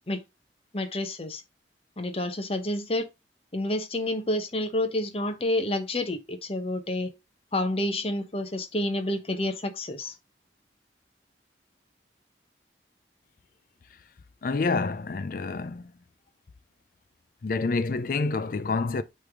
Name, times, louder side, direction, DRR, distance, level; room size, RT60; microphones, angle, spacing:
voice 1, 0.7-1.4 2.0-3.1 3.5-7.1 7.5-10.1, left 1 dB, 35° left, 1.0 m, -29 dB
voice 2, 14.4-15.9 17.4-19.0, left 3 dB, 50° left, 0.4 m, -28 dB
8.2 x 3.4 x 3.6 m
head